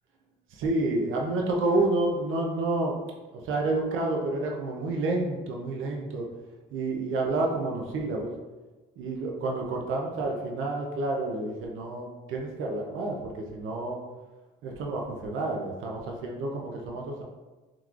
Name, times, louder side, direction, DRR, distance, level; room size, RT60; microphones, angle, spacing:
voice 1, 0.5-2.9 3.3-6.3 6.7-8.3 9.0-14.0 14.6-17.2, right 2 dB, 85° right, 0 dB, 0.5 m, -29 dB
3.7 x 2.9 x 2.4 m, 1.2 s
cardioid pair, 90°, 20 cm